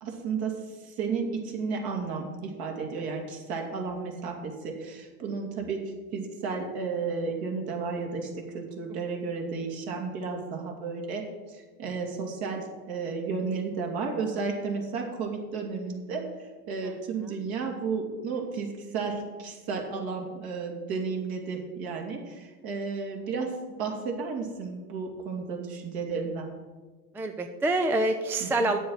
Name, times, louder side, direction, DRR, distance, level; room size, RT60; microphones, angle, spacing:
voice 1, 0.0-23.5 23.8-26.5 28.4-28.7, right 4 dB, 50° right, 1 dB, 2.7 m, -33 dB
voice 2, 27.1-28.8, right 2 dB, 5° right, 7 dB, 0.4 m, -27 dB
8.9 x 7.3 x 6.4 m, 1.3 s
hypercardioid pair, 105°, 45 cm